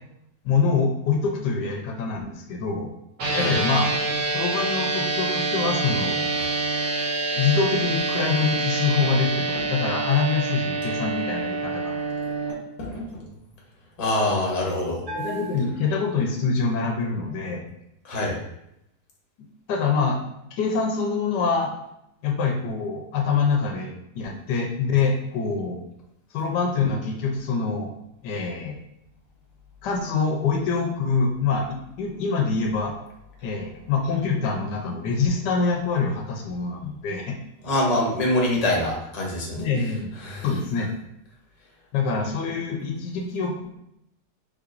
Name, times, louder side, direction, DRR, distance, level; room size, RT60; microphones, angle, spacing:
voice 1, 0.4-2.9 3.3-4.0 4.3-6.3 7.3-12.0 15.1-17.7 19.7-20.2 20.5-21.7 22.2-25.8 26.3-27.9 28.2-28.8 29.8-32.9 33.4-37.4 39.6-40.1 40.4-40.9 41.9-43.7, left 5 dB, 85° left, 2 dB, 1.4 m, -25 dB
sound 1, 3.2-12.5, right 3 dB, 85° right, 1.6 m, -26 dB
voice 2, 12.8-13.3 14.0-15.0 18.0-18.4 37.6-39.7 40.2-40.5, left 1 dB, 25° left, -3 dB, 0.9 m, -25 dB
Bell, 15.1-16.7, right 3 dB, 50° right, 1.8 m, -38 dB
4.8 x 3.5 x 2.5 m, 0.80 s
omnidirectional pair, 1.8 m